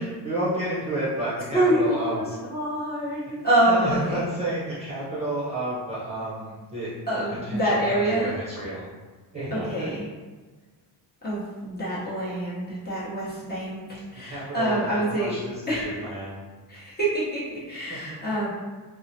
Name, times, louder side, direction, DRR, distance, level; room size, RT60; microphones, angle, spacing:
voice 1, 0.0-2.4 3.7-6.9 7.4-8.9 9.3-9.9 14.2-16.4 17.9-18.0, right 1 dB, 15° right, -9 dB, 0.8 m, -30 dB
voice 2, 1.5-2.2 2.5-4.2 7.1-8.3 9.5-10.0 11.2-15.3 15.7-15.9 16.7-18.5, right 1 dB, 25° left, -8 dB, 1.0 m, -26 dB
4.5 x 2.1 x 2.8 m, 1.3 s
cardioid pair, 165°, 42 cm